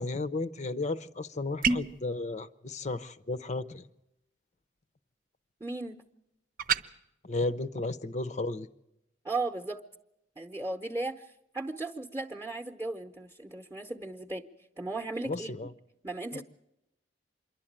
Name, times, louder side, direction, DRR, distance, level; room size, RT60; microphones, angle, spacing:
voice 1, 0.0-3.8 7.2-8.7 15.3-15.7 16.3-16.4, left 2 dB, 40° left, 14 dB, 0.6 m, -34 dB
sound 1, 1.6-2.0 6.6-6.8, right 5 dB, 50° right, 0.8 m, -27 dB
voice 2, 5.6-6.0 9.2-9.8 10.4-11.3 11.5-14.4 14.8-15.6 16.0-16.4, right 2 dB, 15° right, 2 dB, 0.9 m, -36 dB
26.5 x 11.5 x 8.8 m, 0.87 s
head